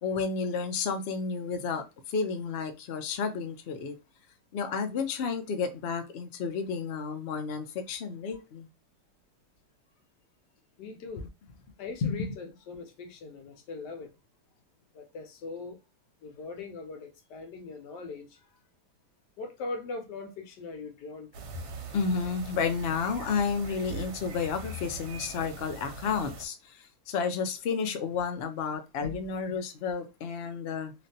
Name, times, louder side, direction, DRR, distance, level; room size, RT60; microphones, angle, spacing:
voice 1, 0.0-4.0 4.5-8.7 12.0-12.2 21.9-30.9, left 5 dB, 70° left, 0.6 m, -31 dB
voice 2, 10.8-11.3 11.8-14.1 14.9-15.8 16.2-18.4 19.4-21.4, left 3 dB, 85° left, 1.4 m, -41 dB
sound 1, 21.3-26.5, right 2 dB, 75° right, 1.3 m, -42 dB
3.1 x 2.5 x 2.6 m
omnidirectional pair, 1.8 m